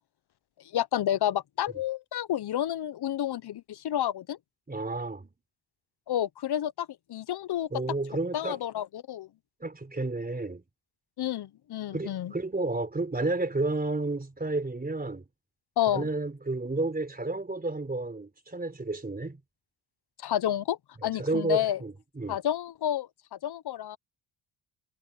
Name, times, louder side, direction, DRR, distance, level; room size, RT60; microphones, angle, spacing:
voice 1, 0.7-4.4 6.1-7.7 8.3-9.3 11.2-12.3 15.8-16.1 20.2-21.8 22.3-24.0, left 11 dB, 55° left, 0.8 m, -30 dB
voice 2, 4.7-5.3 7.7-8.6 9.6-10.6 11.9-15.2 15.9-19.4 21.0-22.4, right 2 dB, 20° right, 3.6 m, -31 dB
cardioid pair, 90°, 48 cm